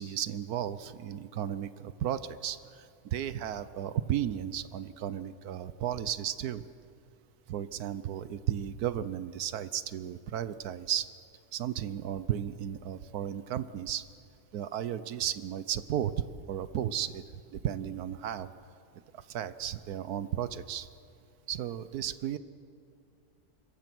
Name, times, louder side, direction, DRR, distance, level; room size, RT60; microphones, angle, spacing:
voice 1, 0.0-6.6 7.5-11.1 11.5-14.0 14.5-16.1 16.5-18.5 19.1-20.9 21.5-22.4, right 10 dB, 75° right, 14 dB, 1.3 m, -34 dB
26.0 x 22.5 x 6.1 m, 2.5 s
omnidirectional pair, 1.6 m